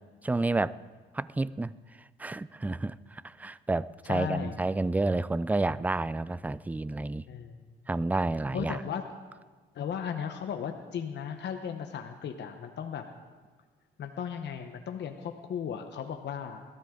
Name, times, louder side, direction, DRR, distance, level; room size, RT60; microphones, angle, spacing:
voice 1, 0.2-0.8 1.1-1.7 2.2-7.3 7.9-8.8, right 2 dB, 10° right, 18 dB, 0.3 m, -30 dB
voice 2, 4.1-4.5 7.3-7.5 8.5-9.0 9.7-13.0 14.0-16.6, left 8 dB, 60° left, 5 dB, 1.0 m, -36 dB
21.0 x 13.5 x 3.8 m, 1.4 s
cardioid pair, 90°, 20 cm